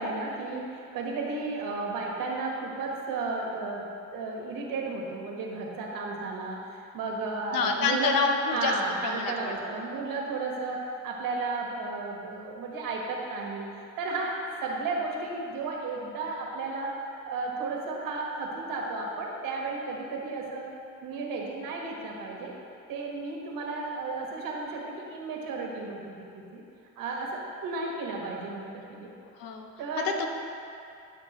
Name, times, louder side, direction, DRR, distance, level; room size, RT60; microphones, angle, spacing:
voice 1, 0.0-13.7 14.0-16.9 17.2-20.7 21.0-22.5 22.9-26.6 27.0-29.1 29.8-30.2, right 3 dB, 80° right, -1 dB, 1.4 m, -33 dB
voice 2, 7.5-8.7 9.0-9.5 29.4-29.7 30.0-30.3, left 5 dB, 90° left, 3 dB, 0.8 m, -27 dB
12.0 x 5.9 x 3.0 m, 2.6 s
cardioid pair, 80°, 33 cm